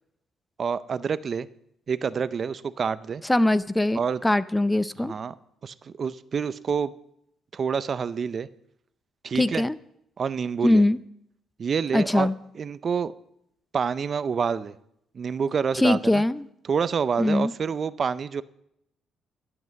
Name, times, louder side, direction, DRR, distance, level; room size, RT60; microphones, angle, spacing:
voice 1, 0.6-1.5 1.9-3.2 3.9-4.2 5.0-5.3 5.6-6.9 7.5-8.5 9.2-9.6 10.2-10.8 11.6-13.1 13.7-14.7 15.1-16.2 16.6-18.4, right 6 dB, 45° right, 16 dB, 0.5 m, -27 dB
voice 2, 3.3-5.1 9.4-9.7 10.6-11.0 11.9-12.3 15.7-16.5 17.2-17.5, left 1 dB, 10° left, 16 dB, 0.5 m, -21 dB
12.5 x 7.9 x 7.4 m, 0.77 s
cardioid pair, 90°, 0 cm